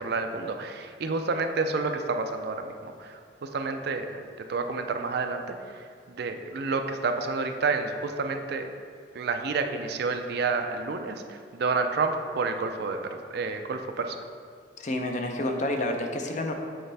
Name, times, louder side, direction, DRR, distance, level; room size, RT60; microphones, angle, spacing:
voice 1, 0.0-4.1 4.5-8.7 9.1-14.2, right 4 dB, 65° right, 6 dB, 0.4 m, -29 dB
voice 2, 14.8-16.5, left 1 dB, 45° left, 3 dB, 0.6 m, -29 dB
7.9 x 4.3 x 3.4 m, 2.3 s
head